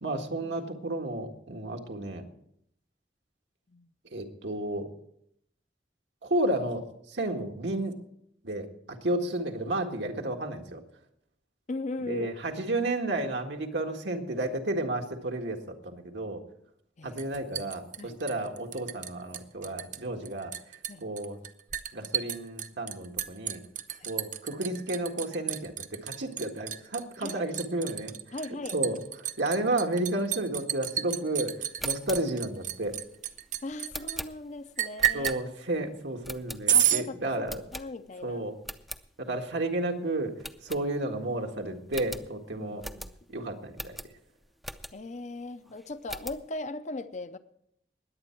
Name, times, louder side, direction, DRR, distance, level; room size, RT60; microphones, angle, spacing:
voice 1, 0.0-2.2 4.1-4.9 6.2-8.0 8.4-10.8 12.1-16.4 17.0-20.5 21.0-21.4 21.9-23.6 24.1-28.4 28.7-33.0 35.1-37.6 38.2-38.6 39.2-42.8 43.3-44.0, right 1 dB, 80° right, 3 dB, 1.7 m, -32 dB
voice 2, 11.7-12.3 17.0-17.2 18.0-18.2 20.9-21.0 24.0-24.1 27.2-27.4 28.3-28.8 33.6-35.4 36.7-37.4 37.7-38.5 39.3-39.4 42.6-43.2 44.9-47.4, left 2 dB, 45° left, 12 dB, 0.6 m, -38 dB
Liquid, 17.2-19.1 19.3-20.0 20.2-34.2 34.8-35.4 36.7-37.0, right 10 dB, 45° right, 0.7 m, -30 dB
sound 1, 31.7-35.8 36.2-37.0 37.5-38.3 38.6-39.1 39.5-39.6 39.8-40.0 40.4-41.3 41.6-41.7 41.9-45.2 45.7-46.5, equal, ahead, 0.5 m, -42 dB
20.5 x 8.5 x 4.6 m, 0.72 s
head